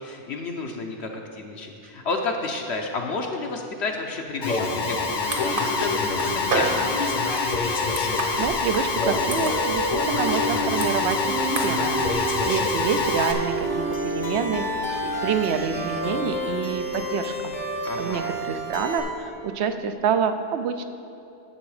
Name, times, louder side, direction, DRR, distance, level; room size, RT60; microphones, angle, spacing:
voice 1, 0.0-7.2 17.8-18.4, left 3 dB, 65° left, 1 dB, 1.0 m, -31 dB
Alarm, 4.4-13.3, left 4 dB, 45° left, 0.8 m, -25 dB
sound 1, 4.6-19.0, right 1 dB, 90° left, 2.0 m, -31 dB
sound 2, 4.9-16.0, right 2 dB, 50° right, 1.3 m, -34 dB
voice 2, 8.1-11.4 11.6-12.0 12.4-14.6 15.2-17.6 18.0-20.8, right 7 dB, 70° right, 9 dB, 0.9 m, -27 dB
10.5 x 7.0 x 4.8 m, 2.8 s
omnidirectional pair, 1.2 m